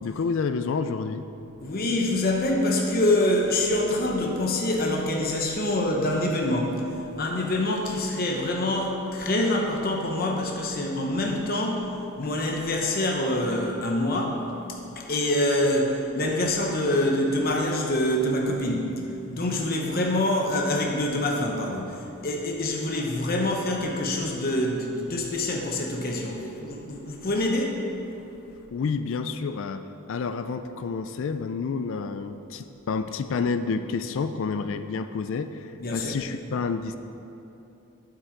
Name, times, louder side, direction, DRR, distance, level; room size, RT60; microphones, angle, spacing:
voice 1, 0.0-1.3 28.7-37.0, left 5 dB, 60° left, 10 dB, 0.3 m, -29 dB
voice 2, 1.6-6.8 7.2-11.9 12.2-14.4 15.0-18.9 19.3-27.8 35.8-36.2, left 1 dB, 45° left, 0 dB, 0.9 m, -25 dB
9.0 x 7.7 x 4.5 m, 2.9 s
head